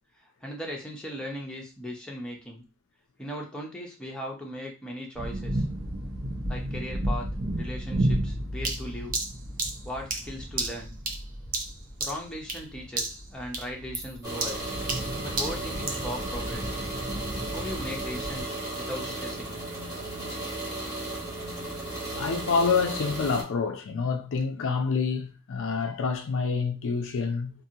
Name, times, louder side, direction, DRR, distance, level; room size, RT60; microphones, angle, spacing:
voice 1, 0.4-2.6 3.2-5.6 6.5-7.3 7.6-9.2 9.8-10.9 12.0-14.7 15.2-16.8 17.5-19.6, equal, 5° left, 0.6 m, -38 dB
sound 1, 5.1-18.4, right 1 dB, 65° right, 1.1 m, -33 dB
sound 2, 8.6-12.7 13.0-13.3 13.5-16.1, right 3 dB, 40° right, 0.5 m, -33 dB
sound 3, 14.2-23.4, right 2 dB, 20° right, 1.1 m, -35 dB
voice 2, 22.2-27.5, left 5 dB, 60° left, 0.4 m, -27 dB
2.7 x 2.6 x 2.7 m
head